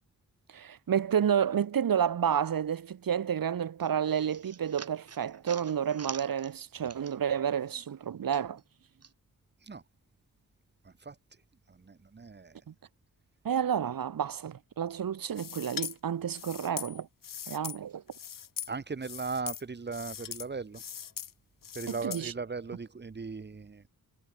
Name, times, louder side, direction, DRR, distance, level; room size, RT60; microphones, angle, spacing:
voice 1, 0.5-8.6 12.7-12.8 13.4-17.1 17.5-18.0 21.9-22.3, right 8 dB, 80° right, 2.3 m, -30 dB
sound 1, 3.8-7.4 7.7-9.1, right 6 dB, 45° right, 2.2 m, -47 dB
voice 2, 10.8-11.2 11.7-12.6 18.7-20.8 21.7-23.8, right 4 dB, 30° right, 2.4 m, -38 dB
sound 2, 15.4-15.9 16.3-17.8 18.1-18.7 19.0-19.6 19.9-20.5 20.7-21.3 21.6-22.2, left 8 dB, 70° left, 1.7 m, -40 dB
wide cardioid pair, 170°, 34 cm